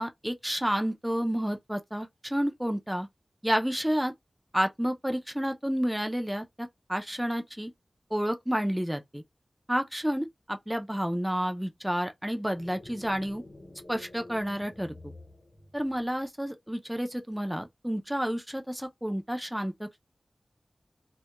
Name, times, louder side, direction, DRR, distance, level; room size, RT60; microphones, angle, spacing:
voice 1, 0.0-3.1 3.4-4.1 4.5-7.7 8.1-9.2 9.7-13.4 13.9-15.1 15.7-20.0, equal, 5° right, 0.3 m, -30 dB
sound 1, 12.5-16.2, left 2 dB, 75° left, 0.7 m, -49 dB
2.2 x 2.1 x 2.8 m
wide cardioid pair, 65°, 0 cm